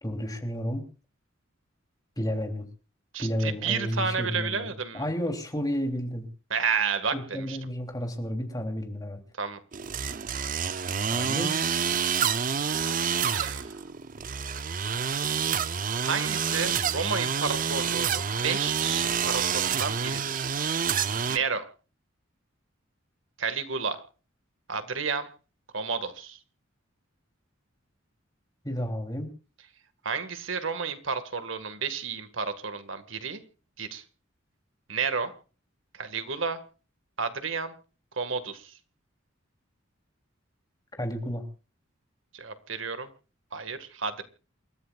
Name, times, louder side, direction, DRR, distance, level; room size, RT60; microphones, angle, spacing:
voice 1, 0.0-0.8 2.2-2.7 3.2-6.3 7.1-9.2 11.0-11.8 28.6-29.3 41.0-41.4, equal, 20° left, 4 dB, 3.3 m, -31 dB
voice 2, 3.1-5.1 6.5-7.6 9.4-9.6 13.3-13.8 16.0-20.5 21.3-21.7 23.4-24.0 24.7-25.3 25.7-26.4 30.0-33.4 33.8-34.0 34.9-35.3 35.9-36.6 37.2-37.7 38.2-38.7 42.3-43.1 43.5-44.2, right 5 dB, 75° right, 10 dB, 1.9 m, -31 dB
sound 1, 9.7-21.4, right 7 dB, 45° right, 0.6 m, -28 dB
28.0 x 14.0 x 2.5 m, 0.36 s
head